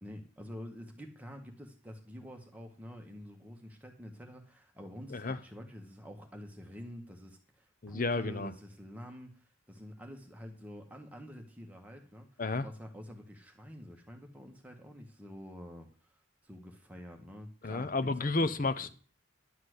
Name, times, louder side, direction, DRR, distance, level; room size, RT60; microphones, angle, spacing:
voice 1, 0.0-15.9 16.4-18.3, equal, 5° right, 1.6 m, -48 dB
voice 2, 7.8-8.5 12.4-12.7 17.6-18.9, left 3 dB, 40° left, 0.7 m, -31 dB
11.5 x 4.4 x 8.1 m
head